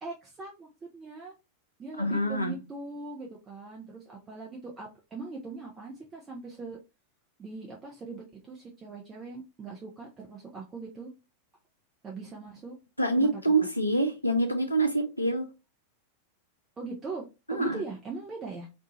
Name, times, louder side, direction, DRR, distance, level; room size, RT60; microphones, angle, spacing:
voice 1, 0.0-1.3 1.8-6.8 7.4-11.1 12.0-12.8 13.2-13.4 16.8-18.7, right 3 dB, 20° right, 0.6 m, -41 dB
voice 2, 2.0-2.6 13.0-15.5 17.5-17.8, right 2 dB, 85° left, 0.5 m, -26 dB
2.6 x 2.4 x 2.8 m
figure-of-eight pair, 90°, 0 cm